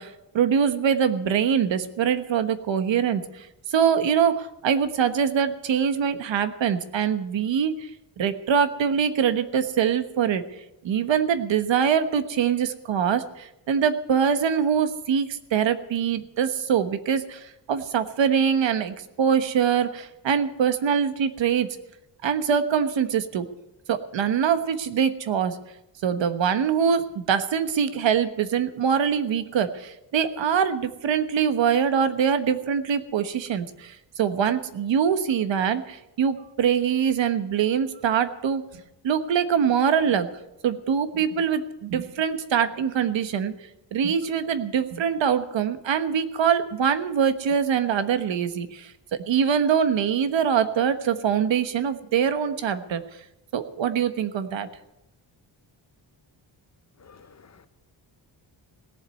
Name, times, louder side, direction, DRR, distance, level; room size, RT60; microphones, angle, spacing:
voice 1, 0.0-7.9 8.2-10.4 10.8-21.7 22.2-23.5 23.9-25.6 26.0-38.6 39.0-40.3 40.6-43.5 43.9-48.9 49.3-53.0 53.5-54.7, right 7 dB, 75° right, 1.3 m, -23 dB
voice 2, 57.0-57.7, left 5 dB, 35° left, 1.0 m, -52 dB
17.5 x 7.4 x 9.4 m
wide cardioid pair, 145°, 45 cm